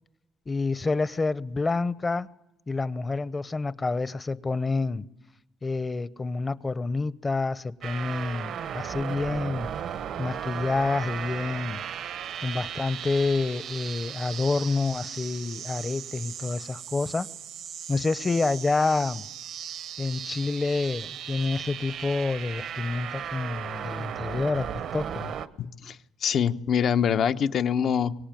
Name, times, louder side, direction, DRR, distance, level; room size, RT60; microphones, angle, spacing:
voice 1, 0.5-2.3 2.7-5.0 5.6-9.7 10.2-11.8 12.4-17.3 17.9-19.2 20.0-25.3, left 3 dB, 30° left, 16 dB, 0.8 m, -28 dB
sound 1, 7.8-25.5, right 9 dB, 70° right, 1.1 m, -36 dB
voice 2, 25.6-28.2, left 8 dB, 65° left, 10 dB, 1.0 m, -25 dB
24.0 x 18.5 x 9.1 m, 0.94 s
cardioid pair, 90°, 0 cm